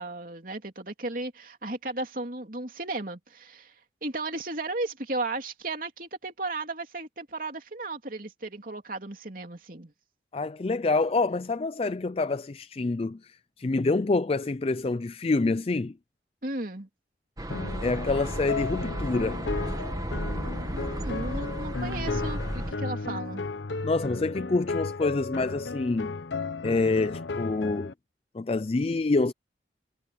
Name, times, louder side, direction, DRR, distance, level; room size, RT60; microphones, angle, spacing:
voice 1, 0.0-3.7 4.0-9.9 16.4-16.9 20.7-23.5, right 2 dB, 50° right, 3.1 m, -35 dB
voice 2, 10.3-15.9 17.8-19.4 23.8-26.1 26.6-27.9 28.3-29.3, left 3 dB, 35° left, 0.4 m, -27 dB
sound 1, 17.4-22.7, right 1 dB, 20° right, 1.5 m, -33 dB
sound 2, 17.5-27.9, left 3 dB, 80° left, 0.9 m, -34 dB
head